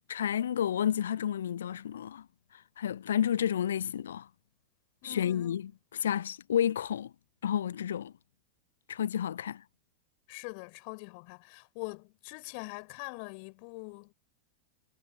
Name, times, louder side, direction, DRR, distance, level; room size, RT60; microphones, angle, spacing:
voice 1, 0.1-2.2 2.8-4.3 5.0-7.1 7.4-8.1 8.9-9.6, left 9 dB, 65° left, 0.7 m, -31 dB
voice 2, 5.0-5.5 10.3-14.1, left 38 dB, 45° left, 4.6 m, -43 dB
figure-of-eight pair, 90°, 0 cm